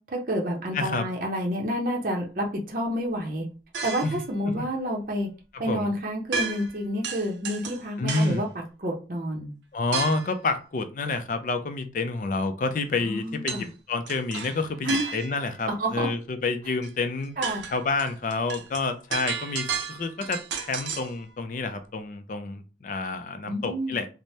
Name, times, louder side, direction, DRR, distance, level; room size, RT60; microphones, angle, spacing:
voice 1, 0.1-3.5 3.8-5.3 5.6-9.5 13.0-13.7 14.8-15.1 15.7-16.1 17.4-17.6 23.5-24.0, equal, 50° right, -1 dB, 0.6 m, -29 dB
voice 2, 0.7-1.1 4.0-4.1 4.6-4.7 5.5-5.9 8.0-8.5 9.7-17.4 17.7-24.1, left 3 dB, 45° left, 9 dB, 0.4 m, -29 dB
sound 1, 3.7-4.3 6.3-6.8 7.0-8.4 9.9-10.3 13.5-13.7 14.1-15.5 16.8-16.9 17.2-21.1, right 5 dB, 90° right, 0.5 m, -33 dB
3.2 x 2.0 x 2.7 m, 0.34 s
head